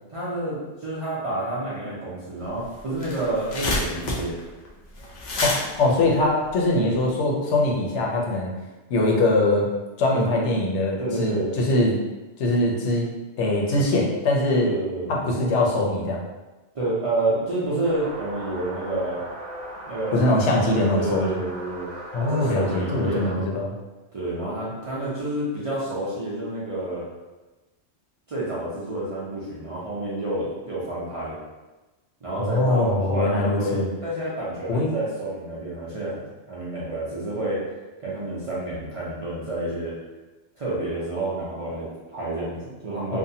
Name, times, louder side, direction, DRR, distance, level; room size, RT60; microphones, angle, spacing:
voice 1, 0.1-4.4 10.1-10.5 11.0-11.5 14.5-15.1 16.7-19.2 19.9-21.9 22.2-23.5 24.1-27.0 28.3-31.4 32.2-36.2 36.5-37.6 38.0-40.0 40.6-43.2, right 1 dB, 45° right, -9 dB, 0.4 m, -29 dB
sound 1, 2.5-2.6 2.8-7.1, left 2 dB, 60° left, 0.5 m, -29 dB
voice 2, 5.4-8.5 8.9-9.7 10.0-12.0 12.4-13.1 13.4-14.7 15.1-16.2 20.1-21.4 22.1-23.7 32.4-33.9 34.7-34.9 43.1-43.2, left 2 dB, 80° left, -2 dB, 0.9 m, -22 dB
sound 2, 17.8-23.3, right 1 dB, 60° right, 0.8 m, -38 dB
2.6 x 2.2 x 2.7 m, 1.1 s
omnidirectional pair, 1.2 m